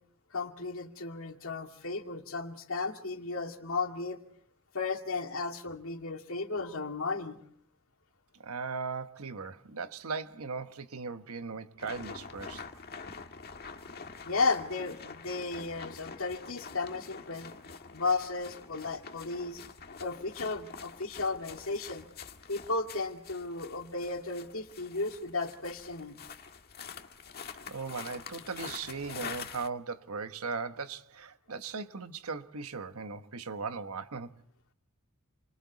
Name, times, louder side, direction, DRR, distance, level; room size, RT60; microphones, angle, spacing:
voice 1, 0.3-4.2 4.7-7.4 14.3-17.5 17.9-19.6 20.0-22.1 22.5-26.2, left 3 dB, 70° left, 2.4 m, -34 dB
voice 2, 8.4-12.7 27.7-34.3, right 4 dB, 80° right, 1.3 m, -38 dB
sound 1, 11.8-29.7, left 5 dB, 45° left, 1.7 m, -46 dB
30.0 x 25.5 x 4.2 m
head